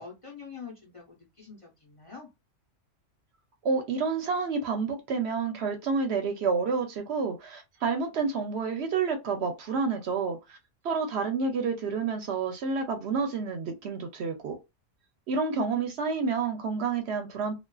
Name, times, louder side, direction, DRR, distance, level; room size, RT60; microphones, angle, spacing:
voice 1, 0.0-2.3, left 5 dB, 30° left, 0.7 m, -45 dB
voice 2, 3.6-10.6 10.8-14.6 15.3-17.5, right 5 dB, 65° right, 0.8 m, -29 dB
2.4 x 2.4 x 2.2 m
omnidirectional pair, 1.2 m